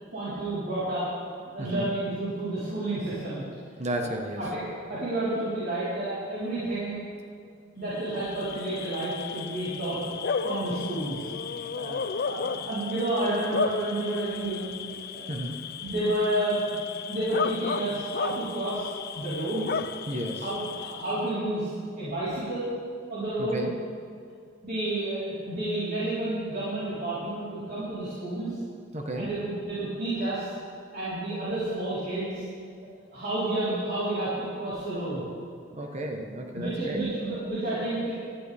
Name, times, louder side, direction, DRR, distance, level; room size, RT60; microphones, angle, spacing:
voice 1, 0.1-1.1 1.5-3.4 3.9-7.0 7.8-10.0 10.4-11.3 11.8-14.7 15.1-16.8 17.1-18.9 19.1-19.7 20.4-21.7 22.0-22.7 23.1-23.7 24.6-28.5 29.2-30.5 30.9-32.4 33.1-35.2 36.5-38.1, right 1 dB, 55° right, -11 dB, 4.1 m, -30 dB
voice 2, 3.8-4.4 15.3-15.6 20.1-20.4 23.4-23.7 28.9-29.3 35.7-37.0, right 1 dB, 35° right, 3 dB, 1.2 m, -33 dB
Bark / Cricket, 8.0-21.3, left 6 dB, 55° left, 0.5 m, -34 dB
19.0 x 13.0 x 3.5 m, 2.2 s
head